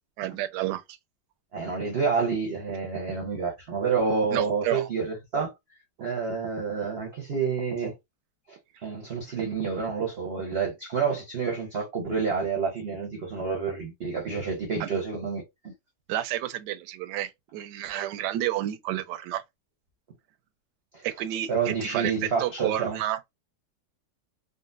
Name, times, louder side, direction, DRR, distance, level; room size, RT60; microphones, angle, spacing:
voice 1, 0.2-1.0 4.3-4.9 14.8-14.9 16.1-19.4 21.0-23.2, right 13 dB, 75° right, 1.1 m, -30 dB
voice 2, 1.5-5.5 6.0-8.0 8.5-15.7 20.9-21.1 21.5-23.0, right 5 dB, 50° right, 0.7 m, -29 dB
3.8 x 2.1 x 2.5 m
omnidirectional pair, 1.9 m